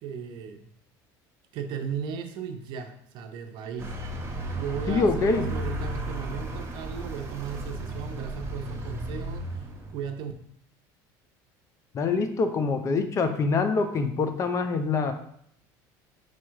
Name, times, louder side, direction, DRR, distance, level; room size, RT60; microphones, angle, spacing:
voice 1, 0.0-0.7 1.5-3.9 4.3-9.5 9.9-10.3, right 7 dB, 60° right, 6 dB, 0.6 m, -36 dB
Vehicle, 3.8-10.2, right 1 dB, 30° right, 0.9 m, -34 dB
voice 2, 4.9-5.5 11.9-15.1, left 4 dB, 35° left, 8 dB, 0.5 m, -25 dB
4.2 x 2.3 x 4.6 m, 0.69 s
supercardioid pair, 120°, 9 cm